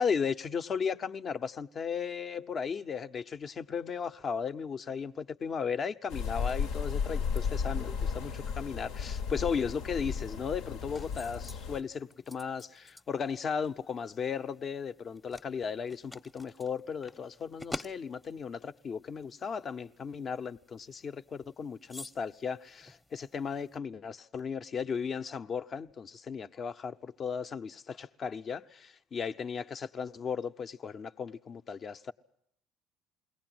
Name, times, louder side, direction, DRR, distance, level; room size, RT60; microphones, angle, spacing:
voice 1, 0.0-32.1, left 6 dB, 45° left, 0.8 m, -36 dB
sound 1, 6.1-11.8, left 6 dB, 75° left, 1.0 m, -34 dB
sound 2, 10.0-23.8, left 2 dB, 10° left, 0.8 m, -50 dB
22.0 x 18.0 x 7.8 m
hypercardioid pair, 70°, 0 cm